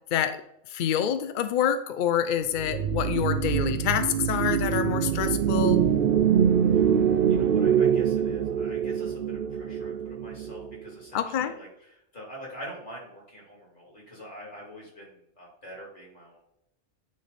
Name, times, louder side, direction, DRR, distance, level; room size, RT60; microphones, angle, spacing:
voice 1, 0.7-5.8 11.1-11.5, left 9 dB, 70° left, 9 dB, 0.4 m, -27 dB
sound 1, 2.6-10.9, right 8 dB, 65° right, 0.6 m, -24 dB
voice 2, 7.3-16.4, equal, 35° left, -4 dB, 3.1 m, -45 dB
9.4 x 3.2 x 4.1 m, 0.78 s
omnidirectional pair, 1.4 m